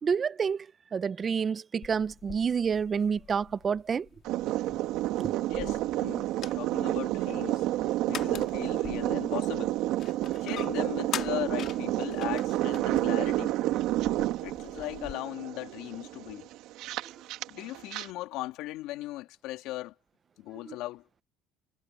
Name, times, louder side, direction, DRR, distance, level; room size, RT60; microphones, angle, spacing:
voice 1, 0.0-4.1 5.2-5.4 20.7-20.8, right 6 dB, 30° right, 0.6 m, -29 dB
sound 1, 1.8-15.1, left 9 dB, 45° left, 2.0 m, -45 dB
sound 2, 4.2-18.1, right 15 dB, 70° right, 2.1 m, -30 dB
voice 2, 5.5-6.3 6.5-7.6 8.1-9.8 10.4-13.6 14.4-16.5 17.5-19.9 20.4-21.0, left 17 dB, 70° left, 3.0 m, -38 dB
cardioid pair, 125°, 0 cm